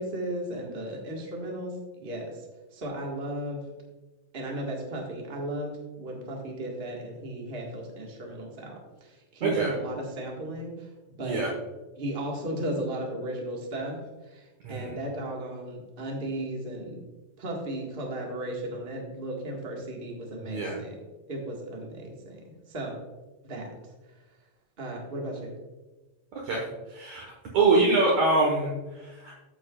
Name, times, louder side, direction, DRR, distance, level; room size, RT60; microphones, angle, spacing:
voice 1, 0.0-2.4 2.7-3.6 4.3-10.9 11.2-11.4 12.0-14.0 14.3-17.0 17.4-21.0 21.3-23.0 23.4-23.7 24.8-25.5, right 1 dB, 45° right, -1 dB, 0.6 m, -35 dB
voice 2, 9.4-9.7 11.2-11.5 14.6-14.9 20.5-20.8 26.4-27.3 27.5-29.3, right 3 dB, 65° right, -2 dB, 2.4 m, -25 dB
14.0 x 7.0 x 2.4 m, 1.2 s
omnidirectional pair, 4.0 m